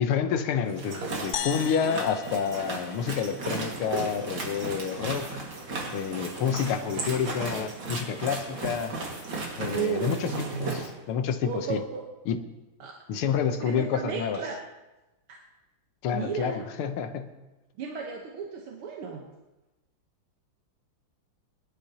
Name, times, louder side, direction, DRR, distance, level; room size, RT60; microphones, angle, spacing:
voice 1, 0.0-5.4 5.9-9.0 9.6-11.8 12.3-12.4 13.1-14.4 16.0-17.3, left 7 dB, 90° left, 8 dB, 1.8 m, -29 dB
sound 1, 0.7-10.9, right 3 dB, 60° right, 2.6 m, -35 dB
sound 2, 1.3-3.8, left 10 dB, 75° left, 1.2 m, -37 dB
voice 2, 9.7-10.8 11.4-12.0 12.8-13.0 13.6-14.6 15.3-15.4 16.1-16.6 17.8-19.2, right 6 dB, 85° right, 0 dB, 2.0 m, -34 dB
22.5 x 12.0 x 2.9 m, 1.0 s
omnidirectional pair, 2.3 m